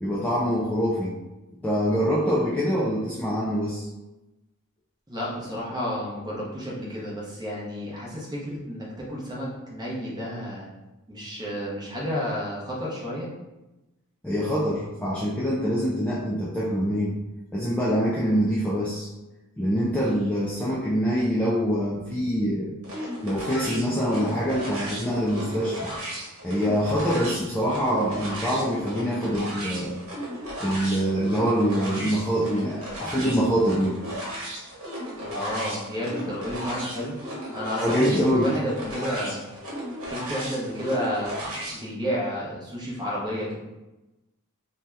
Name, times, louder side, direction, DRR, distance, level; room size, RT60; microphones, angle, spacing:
voice 1, 0.0-1.1 1.6-3.9 14.2-17.1 17.5-19.1 19.6-22.7 23.2-25.9 26.4-30.0 30.6-33.9 37.7-38.5, equal, 5° left, -7 dB, 0.3 m, -25 dB
voice 2, 5.1-10.7 11.1-13.3 35.2-37.2 37.5-39.4 40.1-43.6, equal, 20° right, -5 dB, 0.7 m, -31 dB
sound 1, 22.8-41.8, equal, 70° right, 1.1 m, -35 dB
2.7 x 2.2 x 3.2 m, 1.0 s
head